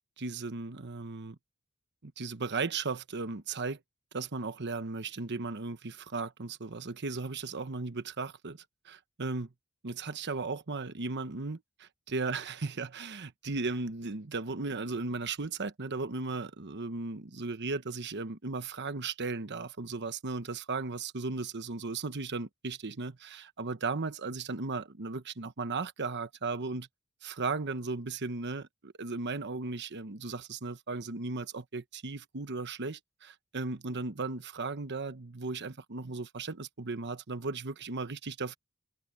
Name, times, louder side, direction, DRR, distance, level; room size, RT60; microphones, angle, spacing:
voice 1, 0.2-1.4 2.0-3.8 4.1-9.5 9.8-26.9 27.2-38.6, right 3 dB, 55° right, 1.1 m, -36 dB
head